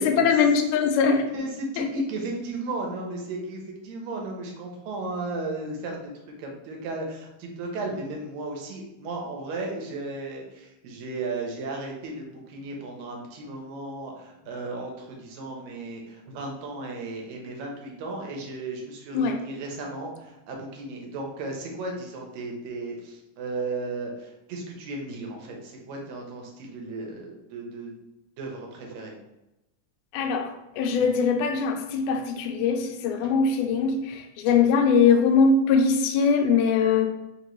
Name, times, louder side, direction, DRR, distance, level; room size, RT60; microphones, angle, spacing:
voice 1, 0.0-1.2 1.8-1.9 19.1-19.4 30.1-37.1, left 5 dB, 80° left, 4 dB, 2.0 m, -22 dB
voice 2, 1.3-6.1 6.4-27.9 28.4-29.1, right 2 dB, 70° right, 0 dB, 1.7 m, -35 dB
5.2 x 2.5 x 3.0 m, 0.95 s
omnidirectional pair, 3.6 m